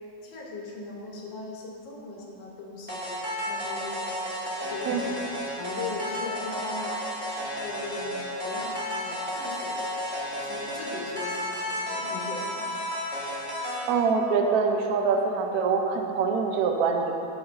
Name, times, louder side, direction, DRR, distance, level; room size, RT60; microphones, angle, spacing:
voice 1, 0.2-4.2 4.5-5.0 5.6-7.0 7.4-8.1 8.4-10.0 10.3-12.7, left 3 dB, 80° left, -3 dB, 1.8 m, -39 dB
sound 1, 2.9-13.9, equal, 5° right, 1.0 m, -32 dB
voice 2, 13.9-17.1, right 5 dB, 65° right, 3 dB, 1.0 m, -24 dB
13.0 x 4.9 x 2.6 m, 3.0 s
omnidirectional pair, 2.0 m